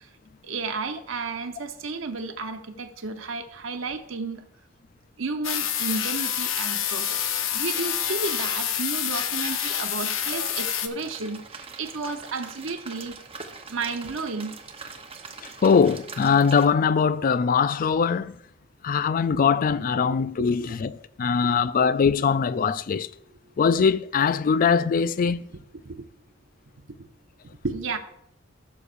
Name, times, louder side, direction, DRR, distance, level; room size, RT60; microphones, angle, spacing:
voice 1, 0.4-4.4 5.2-7.2 7.5-13.1 13.7-14.5 20.0-20.5 21.4-21.5 25.9-26.0 27.6-28.0, right 4 dB, 75° right, 0.9 m, -32 dB
sound 1, 5.4-10.9, left 9 dB, 80° left, 0.7 m, -27 dB
sound 2, 10.9-16.7, right 4 dB, 30° right, 0.9 m, -42 dB
voice 2, 15.6-18.3 18.8-23.1 23.6-25.5, left 6 dB, 45° left, 0.4 m, -22 dB
15.5 x 6.7 x 2.6 m
head